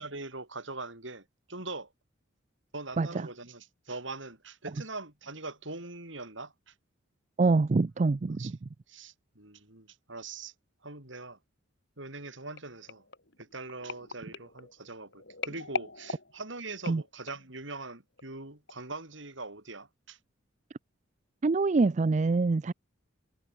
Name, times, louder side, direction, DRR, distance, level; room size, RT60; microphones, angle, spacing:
voice 1, 0.0-1.9 2.7-6.7 8.4-8.6 8.9-10.5 10.8-11.4 12.0-13.0 13.4-20.2, right 3 dB, 65° right, 5.5 m, -42 dB
voice 2, 7.4-8.6 16.9-17.0 21.4-22.7, right 3 dB, 35° right, 0.4 m, -25 dB
sound 1, 12.6-17.6 18.2-18.4 18.7-18.8, left 4 dB, 60° left, 6.5 m, -41 dB
head